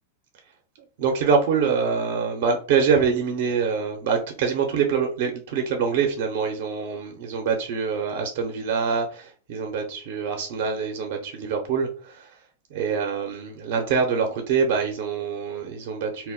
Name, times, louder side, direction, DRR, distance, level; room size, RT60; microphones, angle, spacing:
voice 1, 1.0-12.3 12.7-16.3, right 6 dB, 65° right, 0.6 m, -25 dB
2.1 x 2.0 x 3.7 m
hypercardioid pair, 120°, 0 cm